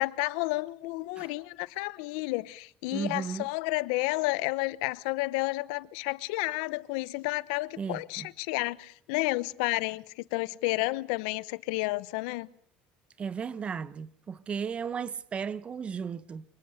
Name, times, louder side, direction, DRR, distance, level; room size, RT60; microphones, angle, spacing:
voice 1, 0.0-12.5, left 22 dB, 85° left, 0.9 m, -31 dB
voice 2, 2.9-3.5 7.8-8.3 13.2-16.4, right 6 dB, 30° right, 1.0 m, -35 dB
25.0 x 20.0 x 6.6 m
cardioid pair, 125°, 4 cm